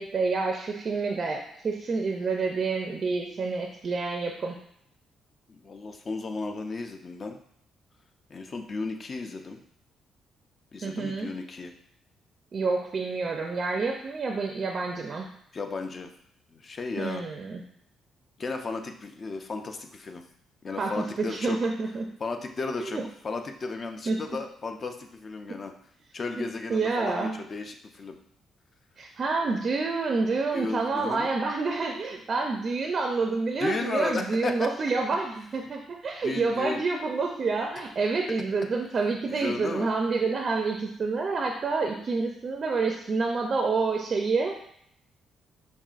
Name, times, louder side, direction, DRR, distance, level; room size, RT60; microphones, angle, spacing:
voice 1, 0.0-4.6 10.8-11.3 12.5-15.3 17.0-17.6 20.8-22.1 22.9-23.1 24.1-24.2 26.4-27.4 29.0-44.7, right 4 dB, 45° right, 2 dB, 0.4 m, -28 dB
voice 2, 5.5-7.4 8.3-9.6 10.7-11.7 15.5-16.1 16.5-17.2 18.4-20.2 20.6-21.6 22.2-25.7 26.1-28.2 30.5-31.3 33.6-34.5 36.2-36.8 39.3-39.9, left 3 dB, 40° left, 5 dB, 0.4 m, -34 dB
5.3 x 2.4 x 2.4 m, 0.70 s
cardioid pair, 90°, 0 cm